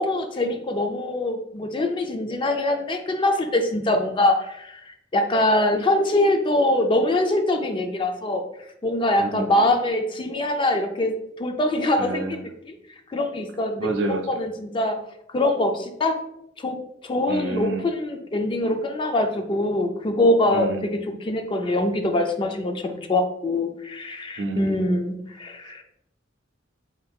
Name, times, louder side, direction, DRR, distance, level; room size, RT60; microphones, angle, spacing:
voice 1, 0.0-8.4 8.8-12.4 12.7-12.8 13.1-15.0 15.3-16.2 16.6-16.8 17.0-20.9 21.2-25.8, left 1 dB, 25° left, 6 dB, 0.3 m, -23 dB
voice 2, 9.2-9.6 12.0-12.4 13.8-14.2 17.3-17.8 20.5-20.8 24.4-24.8, right 2 dB, 70° right, 3 dB, 0.6 m, -28 dB
3.7 x 3.6 x 2.3 m, 0.78 s
head